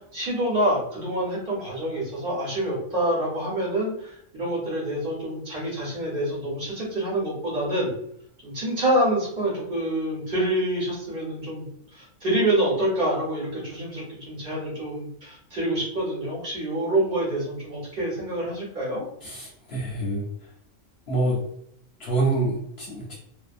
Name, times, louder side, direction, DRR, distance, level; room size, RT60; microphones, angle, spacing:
voice 1, 0.1-7.9 8.4-19.0, right 1 dB, 45° right, -6 dB, 1.1 m, -27 dB
voice 2, 19.2-20.3 21.1-21.4 22.0-23.1, right 2 dB, 60° left, -3 dB, 0.8 m, -26 dB
2.7 x 2.1 x 2.4 m, 0.71 s
omnidirectional pair, 1.4 m